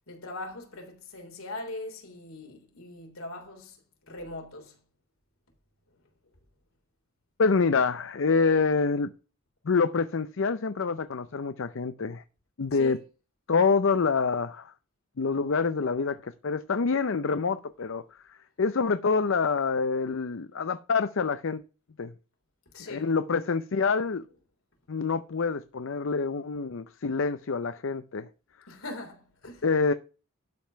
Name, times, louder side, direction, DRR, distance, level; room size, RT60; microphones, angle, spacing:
voice 1, 0.1-3.8 4.1-4.8 12.7-13.0 22.7-23.1 28.7-29.6, left 2 dB, 85° left, 3.5 m, -41 dB
voice 2, 7.4-9.1 9.7-12.2 12.6-13.0 13.5-14.7 15.2-18.0 18.6-21.6 22.0-22.1 22.9-24.2 24.9-28.3 29.6-29.9, left 4 dB, 65° left, 0.6 m, -26 dB
12.0 x 5.4 x 5.7 m
head